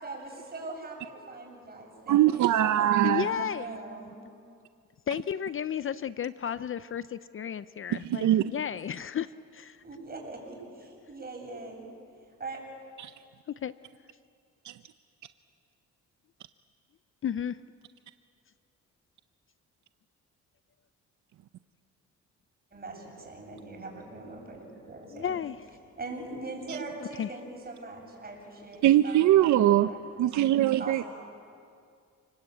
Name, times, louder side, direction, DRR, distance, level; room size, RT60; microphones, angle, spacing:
voice 1, 0.0-2.9 3.2-4.2 9.8-11.9 12.4-12.6 22.7-25.3 26.0-30.0 30.8-31.1, right 3 dB, 30° right, 1 dB, 8.0 m, -41 dB
voice 2, 2.1-3.3 7.9-8.5 13.0-13.1 14.6-14.7 26.7-26.8 28.8-29.9 30.2-31.1, right 13 dB, 70° right, 11 dB, 0.7 m, -22 dB
voice 3, 3.0-3.7 5.1-9.8 13.6-13.7 17.2-17.6 25.1-25.5 27.2-27.3, left 9 dB, 45° left, 14 dB, 0.6 m, -33 dB
30.0 x 20.5 x 8.6 m, 2.3 s
cardioid pair, 90°, 30 cm